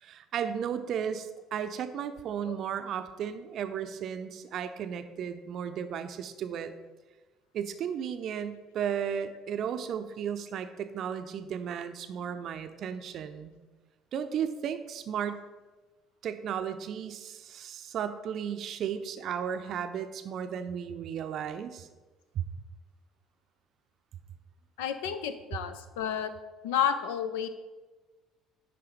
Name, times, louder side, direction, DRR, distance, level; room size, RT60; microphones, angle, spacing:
voice 1, 0.0-6.7 7.5-13.5 14.1-15.4 16.2-21.9 22.3-22.4, right 8 dB, 50° right, 9 dB, 0.6 m, -34 dB
voice 2, 24.8-26.3 26.6-27.5, left 8 dB, 70° left, 10 dB, 0.5 m, -31 dB
10.0 x 3.4 x 5.1 m, 1.2 s
figure-of-eight pair, 55°, 0 cm